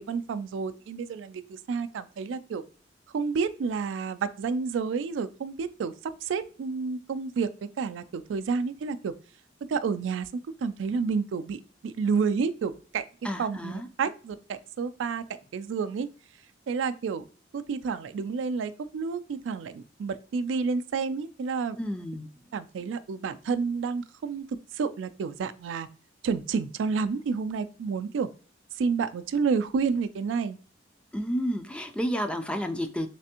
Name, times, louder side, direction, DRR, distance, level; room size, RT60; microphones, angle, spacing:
voice 1, 0.0-2.6 3.1-7.5 7.8-9.1 9.7-10.3 10.6-13.0 13.4-13.7 14.0-15.2 15.5-16.1 16.7-17.2 17.5-21.8 22.5-24.4 24.7-25.9 26.2-28.3 28.8-30.6, right 5 dB, 90° right, 11 dB, 0.3 m, -30 dB
voice 2, 13.2-13.9 21.8-22.3 31.1-33.1, equal, 5° left, 7 dB, 0.3 m, -31 dB
3.3 x 3.3 x 2.8 m, 0.38 s
head